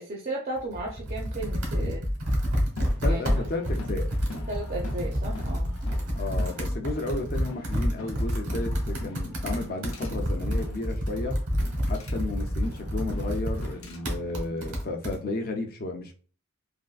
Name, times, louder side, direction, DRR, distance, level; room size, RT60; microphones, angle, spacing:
voice 1, 0.0-2.0 3.0-3.5 4.5-5.7, right 2 dB, 40° right, 0.5 m, -35 dB
Computer keyboard, 0.6-15.2, equal, 85° right, 1.1 m, -29 dB
sound 1, 2.4-6.6 6.9-10.8 11.1-14.1, left 3 dB, 85° left, 0.6 m, -44 dB
voice 2, 3.0-4.1 6.1-11.4 11.8-16.1, left 2 dB, 40° left, 0.5 m, -33 dB
sound 2, 9.7-10.1 11.4-12.2 13.5-14.0 14.4-14.6, left 3 dB, 65° left, 0.9 m, -49 dB
3.5 x 2.5 x 2.4 m
head